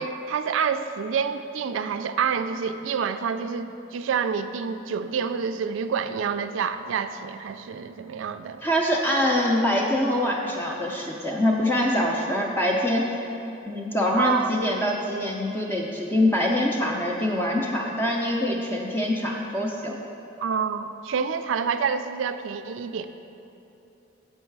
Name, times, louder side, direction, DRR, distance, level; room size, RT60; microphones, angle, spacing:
voice 1, 0.0-8.6 14.2-14.5 20.4-23.0, right 6 dB, 75° right, 10 dB, 0.3 m, -28 dB
voice 2, 8.6-13.0 13.7-20.0, left 1 dB, 10° left, -1 dB, 0.4 m, -24 dB
7.3 x 5.5 x 4.6 m, 3.0 s
head